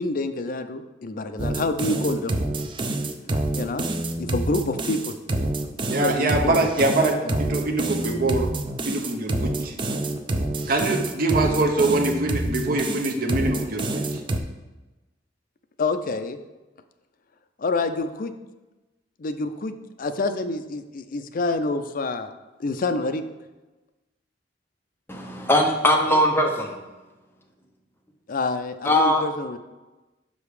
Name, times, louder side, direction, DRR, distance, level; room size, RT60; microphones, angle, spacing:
voice 1, 0.0-2.4 3.6-3.9 4.2-5.2 5.9-6.7 7.2-7.3 15.8-16.4 17.6-18.3 19.2-22.3 22.6-23.2 28.3-29.6, left 3 dB, 50° left, 8 dB, 0.5 m, -27 dB
sound 1, 1.4-14.4, right 2 dB, 25° right, 0.5 m, -27 dB
voice 2, 5.9-8.5 8.9-9.7 10.7-14.0, right 2 dB, 50° right, 2 dB, 0.8 m, -24 dB
voice 3, 25.1-26.8 28.8-29.2, left 1 dB, 10° left, 2 dB, 0.8 m, -20 dB
5.8 x 5.1 x 4.8 m, 1.1 s
head